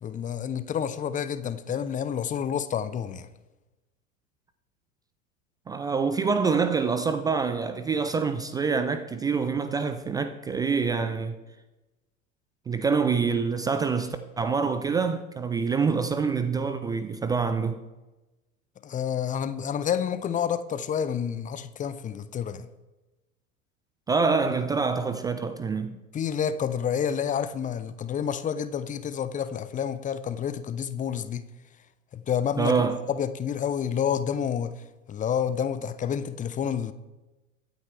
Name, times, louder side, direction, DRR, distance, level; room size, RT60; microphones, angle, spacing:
voice 1, 0.0-3.3 18.8-22.7 26.1-31.4 32.1-34.7 35.1-36.9, left 8 dB, 20° left, 0.7 m, -29 dB
voice 2, 5.7-11.4 12.7-17.8 24.1-26.0 32.6-33.0, right 5 dB, 10° right, 0.3 m, -26 dB
23.0 x 9.3 x 3.3 m
figure-of-eight pair, 80°, 41 cm